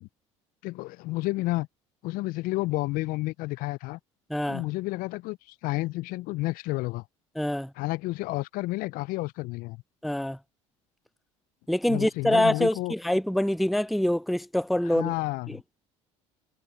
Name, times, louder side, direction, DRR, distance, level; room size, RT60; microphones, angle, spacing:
voice 1, 0.6-1.7 2.0-4.0 4.5-7.0 7.8-9.8 11.9-12.9 14.9-15.6, left 20 dB, 60° left, 0.6 m, -31 dB
voice 2, 4.3-4.6 7.4-7.7 10.0-10.4 11.7-15.1 15.5-15.6, left 1 dB, ahead, 0.4 m, -25 dB
hypercardioid pair, 70°, 17 cm